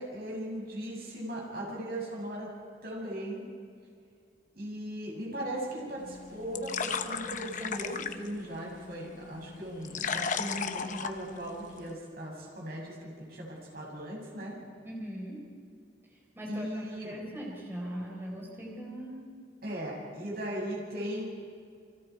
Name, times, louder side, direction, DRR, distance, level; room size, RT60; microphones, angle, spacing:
voice 1, 0.0-2.5 2.8-3.4 4.5-14.6 16.5-17.2 19.6-21.2, right 1 dB, 55° right, -3 dB, 7.3 m, -38 dB
sound 1, 6.0-12.0, left 6 dB, 45° left, 0.9 m, -36 dB
voice 2, 14.8-15.5 16.4-19.3, equal, 15° right, -3 dB, 4.6 m, -40 dB
29.5 x 25.0 x 4.8 m, 2.2 s
head